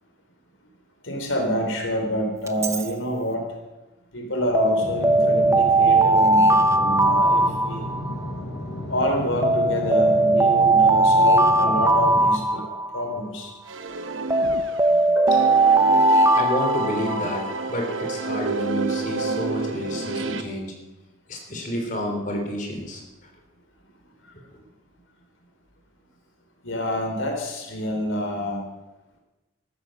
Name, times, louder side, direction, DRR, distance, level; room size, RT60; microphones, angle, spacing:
voice 1, 1.0-3.5 4.1-7.8 8.9-12.7 12.9-13.5 14.9-15.5 24.2-24.4 26.6-28.6, equal, 85° left, 2 dB, 3.5 m, -27 dB
Alarm, 2.5-2.8 4.5-8.3 9.4-13.2 14.3-17.5, right 2 dB, 15° right, 0.6 m, -19 dB
sound 1, 4.8-12.3, left 1 dB, 60° left, 4.6 m, -33 dB
sound 2, 13.7-14.9 15.3-20.4, right 3 dB, 85° right, 1.1 m, -29 dB
voice 2, 16.3-20.7 21.3-23.0, left 1 dB, 40° left, 2 dB, 3.3 m, -29 dB
13.5 x 13.5 x 6.5 m, 1.1 s
head